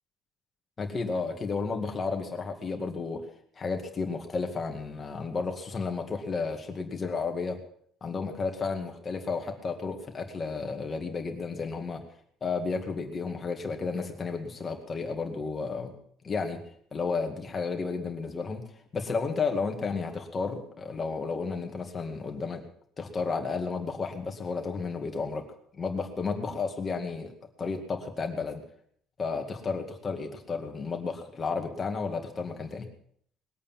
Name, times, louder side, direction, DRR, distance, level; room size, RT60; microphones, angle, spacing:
voice 1, 0.8-3.2 3.6-7.6 8.0-12.0 12.4-15.9 16.2-16.6 16.9-18.6 18.9-22.6 23.0-25.4 25.7-27.3 27.6-28.6 29.2-32.9, left 4 dB, 20° left, 3 dB, 2.2 m, -32 dB
21.0 x 8.5 x 7.5 m, 0.63 s
cardioid pair, 170°, 0 cm